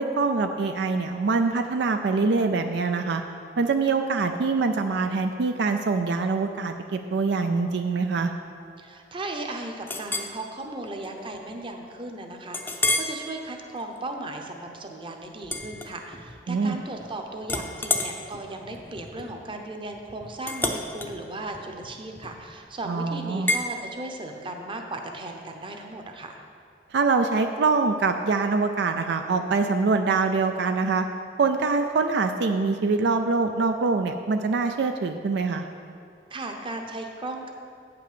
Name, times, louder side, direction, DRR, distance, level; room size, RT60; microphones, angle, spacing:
voice 1, 0.0-3.2 3.6-8.3 16.5-16.8 22.9-23.5 26.9-31.1 31.4-35.6, right 4 dB, 70° right, 6 dB, 0.4 m, -24 dB
voice 2, 8.8-26.4 36.3-37.5, right 2 dB, 30° right, 3 dB, 0.8 m, -36 dB
Chink clink, 9.9-10.3 10.9-11.1 11.5-11.6 12.5-13.2 13.7-14.0 15.4-16.4 16.7-17.1 17.4-22.6 23.5-23.7, left 2 dB, 10° left, 0.6 m, -30 dB
8.6 x 5.9 x 6.8 m, 2.4 s
head